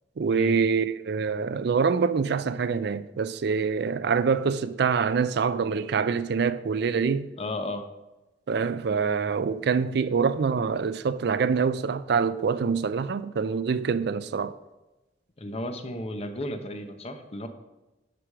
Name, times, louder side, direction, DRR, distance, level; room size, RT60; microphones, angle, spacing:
voice 1, 0.2-7.3 8.5-14.5, right 5 dB, 65° right, 0.4 m, -25 dB
voice 2, 7.4-7.8 15.4-17.5, left 1 dB, 35° left, 0.8 m, -33 dB
12.0 x 4.8 x 4.8 m
head